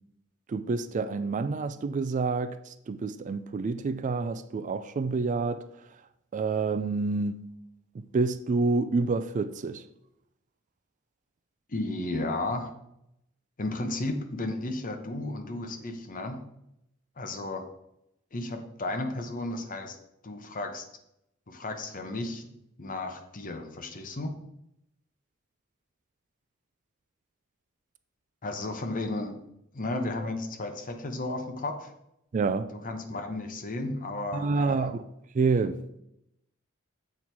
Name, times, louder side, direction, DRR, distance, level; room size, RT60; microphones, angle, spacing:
voice 1, 0.5-5.7 6.3-7.4 7.9-9.8 32.3-32.7 34.3-35.1 35.3-35.8, right 4 dB, 35° right, 0.3 m, -28 dB
voice 2, 11.7-12.7 13.6-16.4 17.2-17.6 18.3-20.0 20.2-20.9 21.5-22.5 22.8-24.3 28.4-29.3 29.7-31.9 32.8-34.9, left 2 dB, 40° left, 0.9 m, -33 dB
7.3 x 4.4 x 4.6 m
head